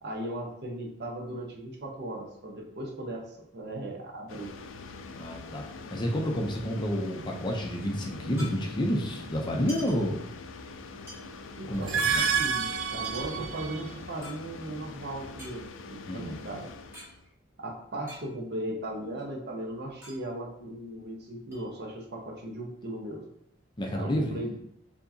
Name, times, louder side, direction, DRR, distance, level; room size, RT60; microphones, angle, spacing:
voice 1, 0.0-4.5 11.6-16.7 17.6-23.2 23.9-24.6, right 1 dB, 55° right, 0 dB, 0.8 m, -37 dB
sound 1, 4.3-17.3, left 3 dB, 80° left, 0.4 m, -44 dB
voice 2, 5.1-10.3 11.7-12.2 16.0-16.4 23.8-24.4, equal, 25° left, 1 dB, 0.5 m, -30 dB
sound 2, 5.7-6.1 6.3-6.4 6.7-9.0 9.5-10.7 11.1-14.9 15.3-17.1 17.4-17.5 17.8-18.7 19.1-21.1 21.5-22.3, equal, 15° right, 1.5 m, -48 dB
sound 3, 11.7-14.0, right 6 dB, 75° right, 0.4 m, -29 dB
4.6 x 2.8 x 2.7 m, 0.74 s
head